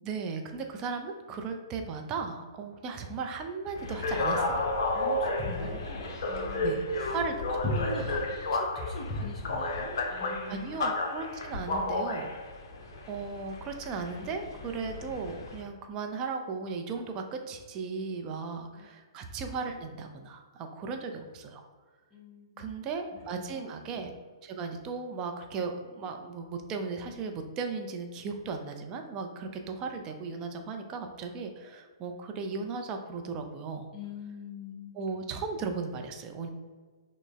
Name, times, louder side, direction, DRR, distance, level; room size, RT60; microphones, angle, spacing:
voice 1, 0.0-4.7 5.6-5.8 6.6-7.4 10.5-12.3 13.1-21.6 22.6-24.1 24.4-33.9 34.9-36.5, right 4 dB, 25° right, 4 dB, 0.4 m, -36 dB
sound 1, 3.7-15.6, left 2 dB, 50° left, 0.5 m, -32 dB
voice 2, 4.9-7.2 7.5-8.2 8.5-10.6 18.8-18.9 22.1-22.7 23.5-23.7 33.9-35.0, left 2 dB, 15° left, -4 dB, 0.7 m, -39 dB
6.0 x 2.0 x 2.3 m, 1.5 s
figure-of-eight pair, 120°, 3 cm